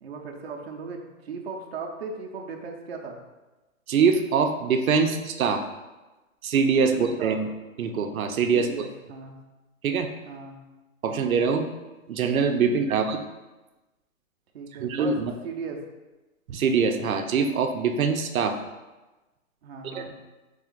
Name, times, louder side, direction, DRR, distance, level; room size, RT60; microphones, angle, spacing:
voice 1, 0.0-3.2 6.9-7.4 8.5-9.4 10.3-10.6 11.1-11.4 12.7-13.0 14.5-15.2 15.4-15.8 19.6-20.1, right 4 dB, 50° right, 1 dB, 0.5 m, -37 dB
voice 2, 3.9-5.6 6.4-7.5 7.8-8.7 9.8-10.1 11.0-11.7 12.1-13.2 14.8-15.3 16.5-18.6 19.9-20.0, right 5 dB, 90° right, 6 dB, 0.6 m, -23 dB
3.6 x 3.3 x 3.7 m, 1.1 s
hypercardioid pair, 175°, 41 cm